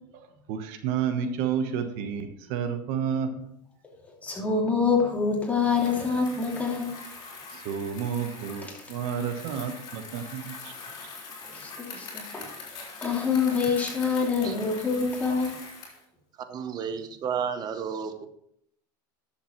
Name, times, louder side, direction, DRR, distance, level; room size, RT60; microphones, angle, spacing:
voice 1, 0.1-3.5 7.5-10.7, right 7 dB, 65° right, 7 dB, 1.1 m, -31 dB
voice 2, 4.2-6.9 11.5-12.5 13.0-15.6, left 5 dB, 15° left, -2 dB, 2.7 m, -26 dB
Bicycle, 5.5-16.0, left 4 dB, 40° left, 3.8 m, -43 dB
voice 3, 16.4-18.3, right 7 dB, 35° right, 10 dB, 0.9 m, -32 dB
11.0 x 7.1 x 3.1 m, 0.74 s
supercardioid pair, 120°, 11 cm